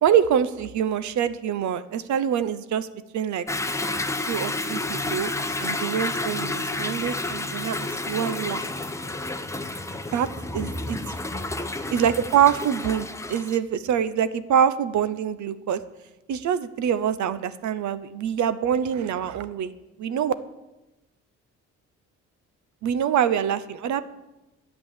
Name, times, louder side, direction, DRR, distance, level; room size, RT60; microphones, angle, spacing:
voice 1, 0.0-2.9 3.1-3.4 4.2-5.3 5.6-8.6 10.1-10.3 10.5-11.0 11.9-15.8 16.3-19.7 20.0-20.3 22.8-24.0, right 8 dB, 70° right, 14 dB, 0.9 m, -25 dB
Toilet flush / Drip / Trickle dribble, 3.5-13.6, left 2 dB, 10° left, 0.9 m, -30 dB
11.5 x 8.4 x 7.4 m, 1.0 s
cardioid pair, 90°, 30 cm